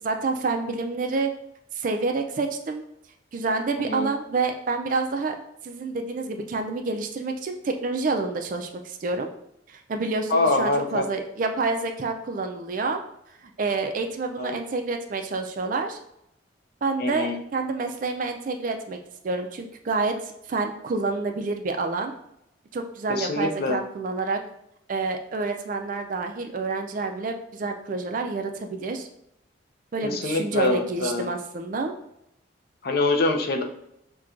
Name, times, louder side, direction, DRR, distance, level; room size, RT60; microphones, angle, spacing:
voice 1, 0.0-1.3 1.7-2.8 3.3-5.4 5.6-9.3 9.7-13.0 13.4-16.0 16.8-19.0 19.2-22.1 22.7-24.4 24.9-29.1 29.9-31.9, right 3 dB, 40° right, 5 dB, 0.3 m, -28 dB
voice 2, 10.3-11.1 14.4-14.6 17.0-17.4 23.1-23.8 30.0-31.3 32.8-33.6, left 2 dB, 50° left, 3 dB, 0.4 m, -24 dB
5.8 x 2.2 x 2.5 m, 0.78 s
head